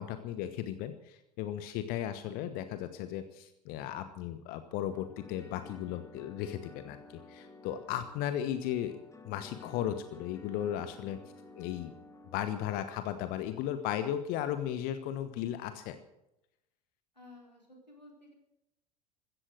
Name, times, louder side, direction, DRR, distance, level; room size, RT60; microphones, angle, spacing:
voice 1, 0.0-9.0 9.2-11.2 11.6-11.9 12.3-16.0, left 11 dB, 45° left, 10 dB, 1.3 m, -36 dB
sound 1, 4.9-12.9, left 3 dB, 15° left, 2.2 m, -53 dB
voice 2, 17.1-18.3, left 2 dB, 90° left, 0 dB, 4.1 m, -55 dB
16.0 x 14.0 x 6.3 m, 0.85 s
figure-of-eight pair, 75°, 21 cm